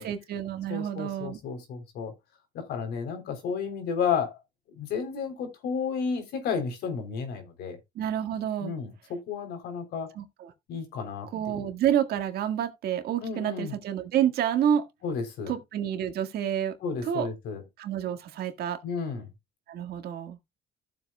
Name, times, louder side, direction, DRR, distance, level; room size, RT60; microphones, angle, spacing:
voice 1, 0.0-1.4 8.0-8.7 10.2-10.5 11.3-14.8 15.5-16.8 17.1-17.3 17.8-18.8 19.7-20.4, right 10 dB, 70° right, 1.8 m, -29 dB
voice 2, 0.7-2.1 2.5-4.4 4.7-7.8 8.6-10.1 10.7-11.7 13.2-13.8 15.0-15.6 16.8-17.6 18.8-19.3, left 6 dB, 75° left, 3.7 m, -32 dB
15.0 x 7.5 x 2.3 m
cardioid pair, 110°, 17 cm